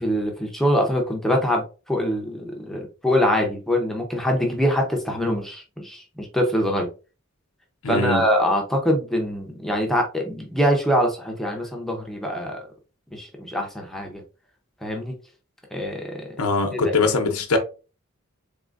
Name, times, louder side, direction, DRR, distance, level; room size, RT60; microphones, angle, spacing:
voice 1, 0.0-6.9 7.9-12.6 13.1-14.2 14.8-15.1 15.7-16.3 16.8-16.9, equal, ahead, 0.7 m, -24 dB
voice 2, 7.8-8.3 16.4-17.6, left 3 dB, 85° left, 0.8 m, -22 dB
4.2 x 3.7 x 2.5 m
head